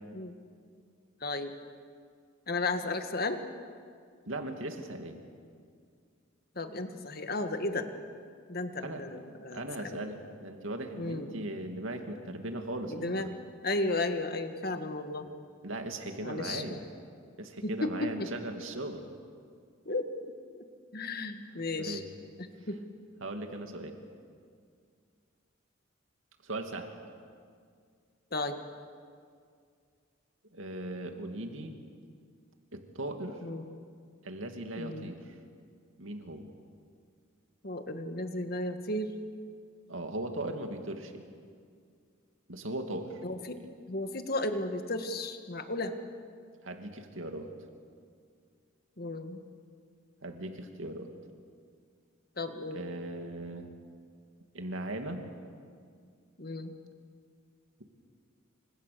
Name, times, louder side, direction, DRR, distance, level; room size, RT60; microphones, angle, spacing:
voice 1, 1.2-1.5 2.5-3.4 6.6-7.9 8.5-10.0 11.0-11.3 12.9-13.4 13.6-15.3 16.2-16.8 17.6-18.3 19.9-20.1 20.9-22.0 22.4-22.8 28.3-28.6 33.4-33.7 34.8-35.1 37.6-39.1 43.2-43.6 43.9-45.9 49.0-49.4 52.4-52.8 56.4-56.7, left 2 dB, 45° left, 7 dB, 1.8 m, -34 dB
voice 2, 4.3-5.2 8.8-9.0 9.5-13.3 15.6-16.8 17.4-19.0 21.8-22.1 23.2-24.0 26.4-26.9 30.5-31.7 32.7-33.4 34.2-35.3 36.0-36.5 39.9-41.3 42.5-43.2 46.6-47.5 50.2-51.1 52.7-53.7 54.5-55.2, right 1 dB, 70° right, 5 dB, 2.6 m, -38 dB
29.0 x 26.0 x 6.9 m, 2.2 s
head